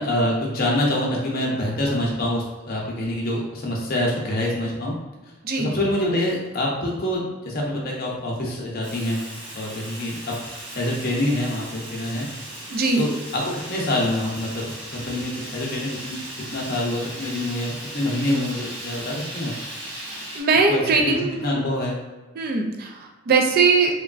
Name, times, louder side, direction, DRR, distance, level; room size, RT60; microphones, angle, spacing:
voice 1, 0.0-4.9 5.3-9.2 9.5-10.3 10.7-12.3 13.0-16.2 16.5-19.5 20.7-22.0, left 1 dB, 45° left, -2 dB, 0.6 m, -26 dB
Fire, 8.8-20.4, right 1 dB, 25° right, 0.9 m, -37 dB
voice 2, 12.7-13.0 20.4-21.4 22.4-24.0, right 4 dB, 45° right, 1 dB, 0.4 m, -20 dB
3.1 x 2.2 x 2.4 m, 1.2 s
head